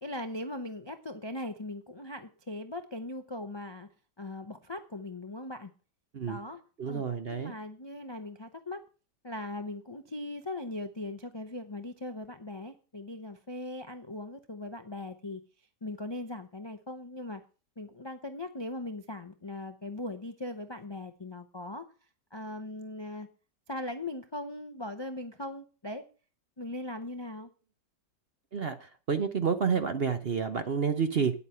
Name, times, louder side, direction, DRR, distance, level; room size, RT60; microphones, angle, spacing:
voice 1, 0.0-3.9 4.2-5.7 6.3-6.6 6.9-7.0 7.3-8.8 9.2-15.4 15.8-17.4 17.8-21.9 22.3-23.3 23.7-26.1 26.6-27.5, left 2 dB, 40° left, 8 dB, 0.3 m, -39 dB
voice 2, 6.8-7.5 28.5-31.3, right 6 dB, 50° right, 9 dB, 0.7 m, -29 dB
9.7 x 8.3 x 5.6 m, 0.36 s
omnidirectional pair, 1.9 m